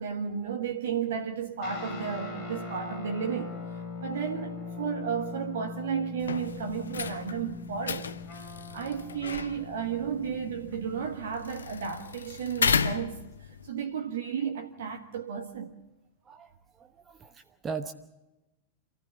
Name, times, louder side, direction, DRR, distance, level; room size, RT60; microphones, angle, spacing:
voice 1, 0.0-3.6 4.0-8.1 8.7-15.7, right 7 dB, 60° right, 1.5 m, -33 dB
sound 1, 1.6-11.3, left 4 dB, 45° left, 5.6 m, -41 dB
sound 2, 6.2-13.7, left 6 dB, 70° left, 0.8 m, -34 dB
voice 2, 16.8-17.9, right 5 dB, 20° right, 1.1 m, -38 dB
27.0 x 15.0 x 7.2 m
figure-of-eight pair, 90°, 0 cm